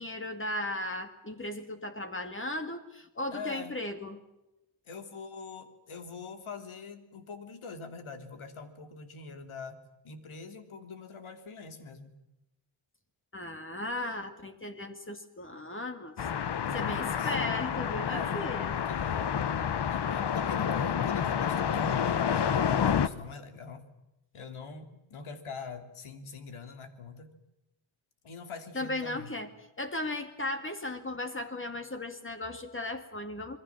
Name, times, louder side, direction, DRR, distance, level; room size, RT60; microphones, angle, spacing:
voice 1, 0.0-4.2 13.3-16.1 16.7-18.7 28.7-29.5 29.8-33.6, left 1 dB, 25° left, 7 dB, 2.1 m, -36 dB
voice 2, 3.3-3.7 4.8-9.8 10.0-12.1 16.5-17.4 18.1-18.4 18.7-23.8 24.3-27.3 28.2-29.3, left 5 dB, 70° left, 7 dB, 3.1 m, -44 dB
sound 1, 16.2-23.1, left 8 dB, 50° left, 1.1 m, -29 dB
27.0 x 22.5 x 7.2 m, 0.92 s
wide cardioid pair, 150°, 50 cm